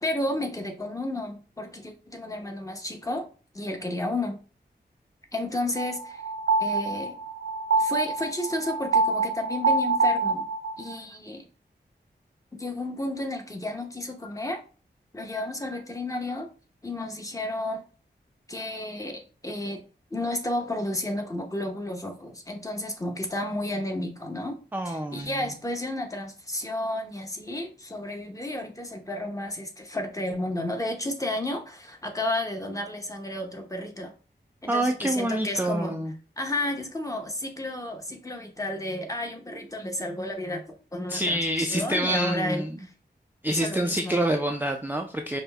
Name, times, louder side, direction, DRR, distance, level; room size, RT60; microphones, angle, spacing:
voice 1, 0.0-3.3 3.5-4.4 5.3-6.2 6.6-7.2 7.8-10.5 10.8-11.4 12.5-14.6 15.1-16.5 16.8-17.8 18.5-19.8 20.1-24.6 24.8-34.1 34.6-36.0 36.4-42.9 43.5-44.2, left 1 dB, 20° left, 4 dB, 0.8 m, -32 dB
sound 1, 5.8-10.9, right 3 dB, 75° right, 0.4 m, -25 dB
voice 2, 24.7-25.5 34.7-36.1 41.1-42.8 43.4-45.4, right 1 dB, 10° right, 3 dB, 0.3 m, -27 dB
5.1 x 2.1 x 3.3 m, 0.37 s
wide cardioid pair, 90°, 18 cm